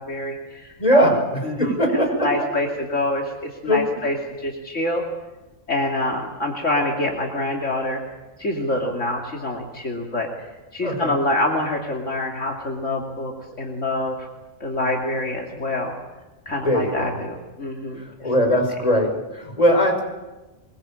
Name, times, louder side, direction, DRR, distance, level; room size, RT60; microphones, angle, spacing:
voice 1, 0.0-1.1 1.4-5.0 5.7-8.0 8.4-10.3 10.7-13.3 13.6-14.3 14.6-15.9 16.5-18.3, left 1 dB, 65° left, 0 dB, 3.1 m, -26 dB
voice 2, 0.8-2.3 3.7-4.0 10.8-11.1 16.6-17.1 18.2-20.0, equal, 30° left, 2 dB, 5.9 m, -20 dB
24.0 x 23.0 x 8.9 m, 1.1 s
omnidirectional pair, 1.4 m